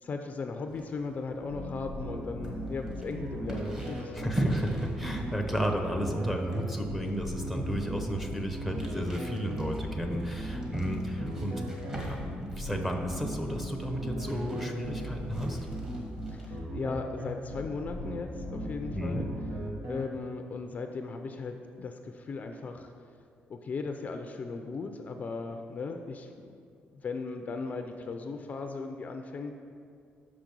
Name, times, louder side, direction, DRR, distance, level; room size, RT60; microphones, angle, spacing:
voice 1, 0.0-4.3 16.3-19.3 19.9-22.9 23.5-26.6 27.0-29.6, left 4 dB, 40° left, 5 dB, 0.5 m, -37 dB
sound 1, 0.7-16.6, right 1 dB, 20° right, 1.6 m, -41 dB
sound 2, 1.5-20.0, right 1 dB, 75° right, 1.3 m, -37 dB
voice 2, 4.1-11.6 12.1-15.6 18.9-19.2, equal, 5° right, 2 dB, 0.8 m, -33 dB
6.3 x 5.1 x 6.1 m, 2.3 s
cardioid pair, 105°, 4 cm